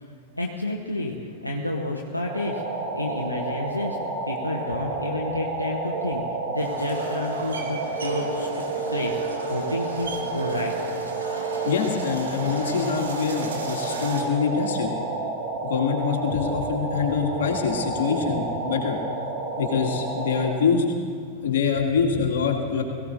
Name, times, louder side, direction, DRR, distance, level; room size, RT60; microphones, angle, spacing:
voice 1, 0.0-4.0 4.3-8.6 8.9-10.7 21.3-21.5, left 1 dB, 85° left, 0 dB, 1.0 m, -30 dB
sound 1, 2.2-20.5, right 3 dB, 45° right, 4.7 m, -30 dB
sound 2, 6.6-14.2, right 3 dB, 70° right, 2.2 m, -37 dB
voice 2, 11.6-14.9 15.6-19.0 19.6-20.8 21.4-22.8, left 6 dB, 60° left, 1 dB, 2.2 m, -25 dB
22.0 x 16.0 x 2.7 m, 2.1 s
figure-of-eight pair, 90°, 0 cm